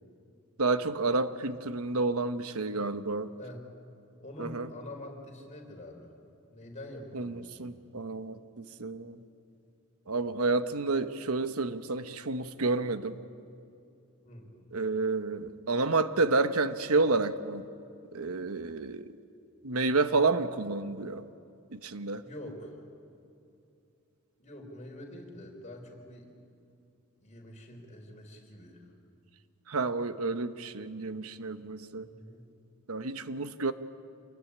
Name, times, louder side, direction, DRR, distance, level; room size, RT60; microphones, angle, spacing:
voice 1, 0.6-3.3 4.4-4.7 7.1-9.2 10.1-13.2 14.7-17.6 18.1-19.1 19.6-21.2 21.7-22.2 29.7-32.1 32.9-33.7, right 3 dB, 80° right, 11 dB, 1.0 m, -30 dB
voice 2, 4.2-6.1 6.5-7.7 14.2-14.5 22.2-22.8 24.4-26.3 27.2-28.9 31.9-32.4, left 1 dB, 35° left, 1 dB, 4.6 m, -45 dB
27.0 x 20.5 x 10.0 m, 2.7 s
head